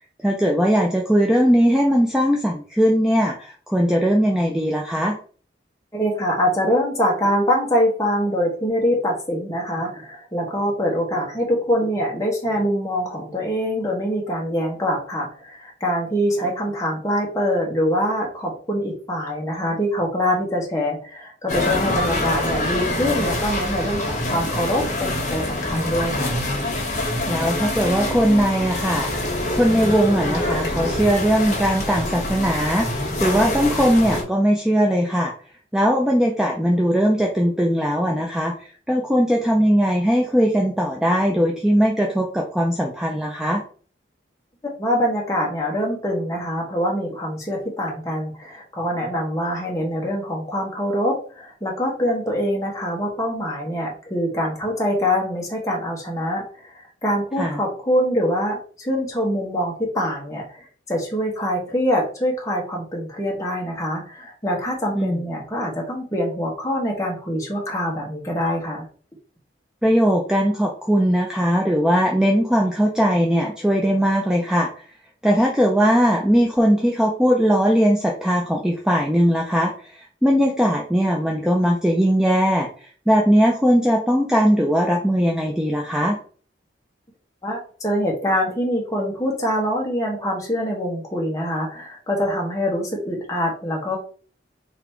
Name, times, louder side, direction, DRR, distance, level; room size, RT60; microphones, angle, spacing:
voice 1, 0.2-5.1 27.3-29.1 29.5-32.9 33.2-35.3 35.7-38.5 38.9-43.6 57.4-57.6 64.9-65.2 69.8-74.7 75.2-82.7 83.1-86.2, equal, 5° right, -1 dB, 0.5 m, -19 dB
voice 2, 5.9-26.4 44.8-56.4 57.0-68.9 87.4-94.0, equal, 15° left, -2 dB, 1.3 m, -24 dB
sound 1, 21.5-34.2, left 1 dB, 40° left, 1.4 m, -25 dB
4.0 x 2.9 x 4.4 m, 0.43 s
head